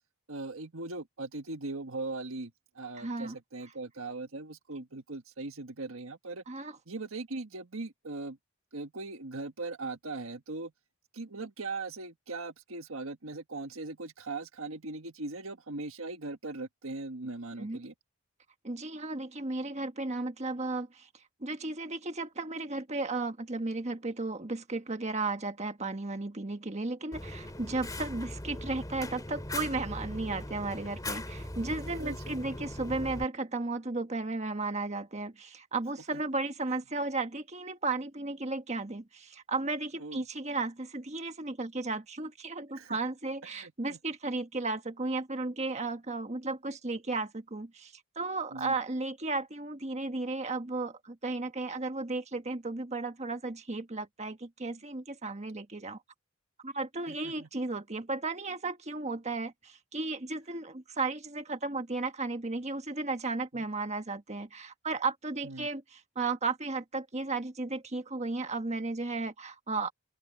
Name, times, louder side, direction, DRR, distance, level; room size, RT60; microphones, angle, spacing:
voice 1, 0.3-6.4 6.9-8.4 8.7-10.7 11.1-17.9 32.0-32.4 36.1-36.2 40.0-40.3 42.7-43.0 43.5-44.0 48.5-48.7 57.1-57.5 63.5-63.6 65.4-65.7, right 3 dB, 75° right, 1.6 m, -40 dB
voice 2, 3.0-3.3 6.5-6.7 17.6-17.8 18.6-21.1 21.4-56.0 56.6-69.9, right 3 dB, 30° right, 1.4 m, -34 dB
Fire, 27.1-33.2, left 1 dB, 15° left, 2.8 m, -40 dB
open air
head